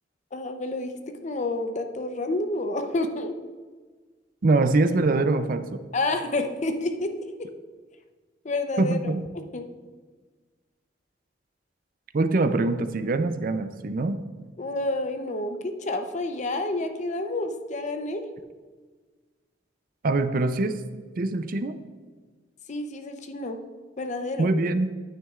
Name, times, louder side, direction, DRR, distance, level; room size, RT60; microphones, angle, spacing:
voice 1, 0.3-0.9 1.2-3.3 5.9-7.1 7.4-7.5 8.4-9.1 9.5-9.7 14.6-18.2 22.7-23.6 24.0-24.5, left 2 dB, 40° left, 6 dB, 0.6 m, -29 dB
voice 2, 4.4-5.8 8.8-9.3 12.1-14.2 20.0-20.8 21.2-21.8 24.4-24.9, right 2 dB, 50° right, 10 dB, 0.4 m, -23 dB
9.3 x 9.1 x 2.4 m, 1.4 s
head